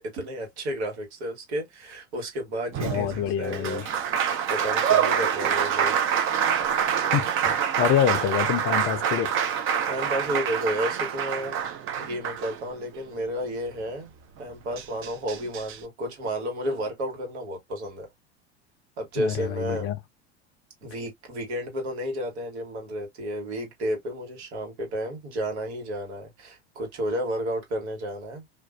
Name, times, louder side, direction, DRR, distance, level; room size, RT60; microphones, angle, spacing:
voice 1, 0.0-3.8 4.5-6.0 9.9-11.6 12.0-14.1 14.4-18.1 19.0-19.9 20.8-28.4, equal, 75° right, 1.4 m, -32 dB
Applause, 2.7-13.0 14.4-14.5 14.8-15.8, right 8 dB, 40° right, 0.6 m, -26 dB
voice 2, 2.8-3.9 7.1-9.3 19.2-20.0, left 10 dB, 40° left, 0.5 m, -26 dB
2.5 x 2.2 x 2.3 m
hypercardioid pair, 90°, 33 cm